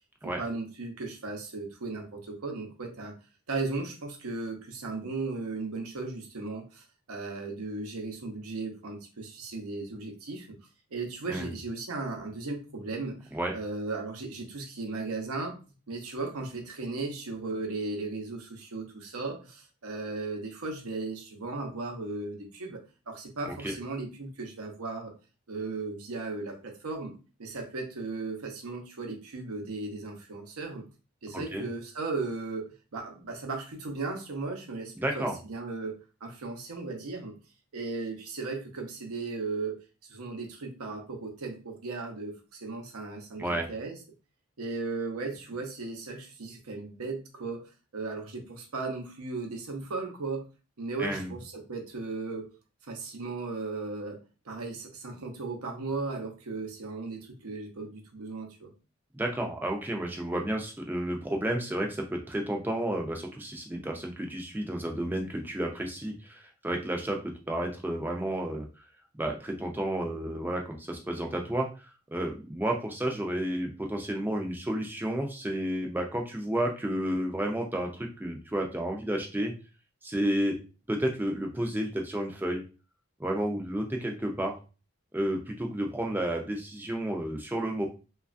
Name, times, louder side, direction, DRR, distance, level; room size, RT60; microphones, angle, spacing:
voice 1, 0.2-3.1 3.5-10.5 10.9-15.6 15.9-22.8 23.1-25.1 25.5-27.1 27.4-30.8 31.2-37.3 37.7-39.8 40.1-44.0 44.6-50.5 50.8-52.5 52.8-54.2 54.4-58.7, right 3 dB, 90° right, 2 dB, 0.7 m, -36 dB
voice 2, 31.3-31.6 35.0-35.3 43.4-43.7 51.0-51.3 59.1-68.6 69.2-71.7 72.1-79.5 80.0-80.6 80.9-82.6 83.2-84.6 85.1-87.9, right 1 dB, 10° right, 2 dB, 0.4 m, -31 dB
3.1 x 2.3 x 2.5 m, 0.33 s
head